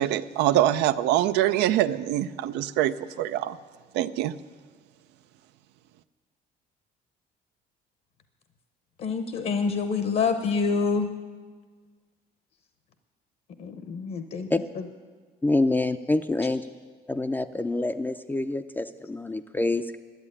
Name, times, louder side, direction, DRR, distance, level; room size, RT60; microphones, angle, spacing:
voice 1, 0.0-3.6 3.9-4.3, right 12 dB, 85° right, 13 dB, 0.5 m, -24 dB
voice 2, 9.0-11.1 13.6-14.5 14.7-14.8, left 5 dB, 55° left, 8 dB, 0.9 m, -27 dB
voice 3, 15.4-16.6 17.1-20.0, left 2 dB, 10° left, 9 dB, 0.4 m, -26 dB
11.5 x 7.9 x 9.7 m, 1.5 s
cardioid pair, 110°, 17 cm